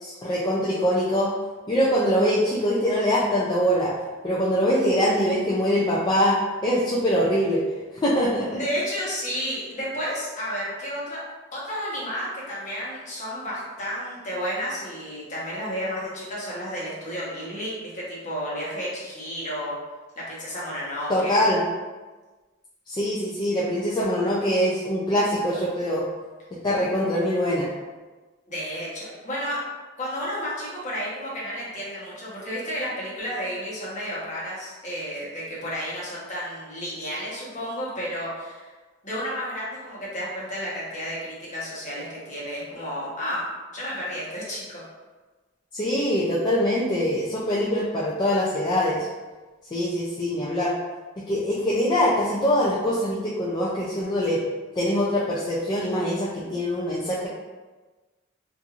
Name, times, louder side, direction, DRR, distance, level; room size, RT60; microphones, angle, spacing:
voice 1, 0.0-1.3 1.7-3.9 4.2-7.6 7.9-8.5 21.1-21.6 22.9-26.0 26.6-27.7 45.7-49.1 49.7-50.7 51.3-54.4 54.8-57.3, equal, 20° left, -6 dB, 0.3 m, -23 dB
voice 2, 8.5-11.2 11.5-19.8 20.2-21.4 28.5-29.6 30.0-38.7 39.0-44.8, equal, 40° left, -7 dB, 0.9 m, -32 dB
2.8 x 2.5 x 2.4 m, 1.3 s
head